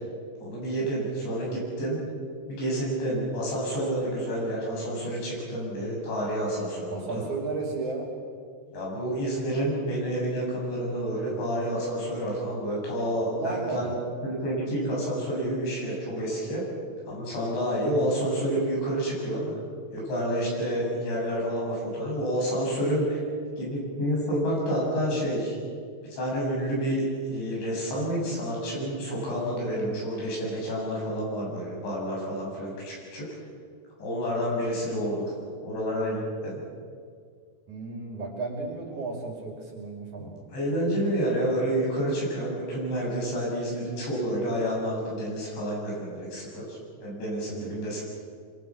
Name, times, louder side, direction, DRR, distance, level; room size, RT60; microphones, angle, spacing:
voice 1, 0.4-2.0 2.5-7.3 8.7-13.9 14.2-16.7 17.1-19.5 19.9-23.2 23.6-25.6 26.1-33.3 34.0-35.3 35.6-36.6 40.2-48.0, equal, 70° left, -3 dB, 9.8 m, -29 dB
voice 2, 6.9-8.1 13.2-13.9 37.7-40.3 47.5-47.8, right 3 dB, 45° right, 0 dB, 3.6 m, -34 dB
26.0 x 24.5 x 6.1 m, 2.1 s
omnidirectional pair, 5.4 m